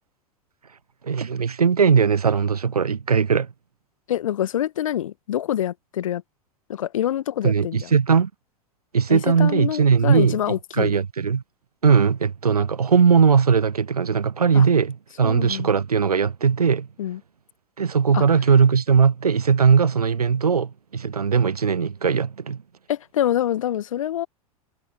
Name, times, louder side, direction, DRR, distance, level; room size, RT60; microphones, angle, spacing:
voice 1, 1.0-3.5 7.4-8.3 8.9-10.4 10.7-11.4 11.8-16.9 17.8-22.6, right 6 dB, 85° right, 0.5 m, -19 dB
voice 2, 4.1-6.2 6.7-7.9 9.1-11.0 14.5-14.6 15.2-15.7 17.0-17.2 18.1-18.2 22.9-24.3, left 11 dB, 60° left, 1.2 m, -26 dB
figure-of-eight pair, 90°, 19 cm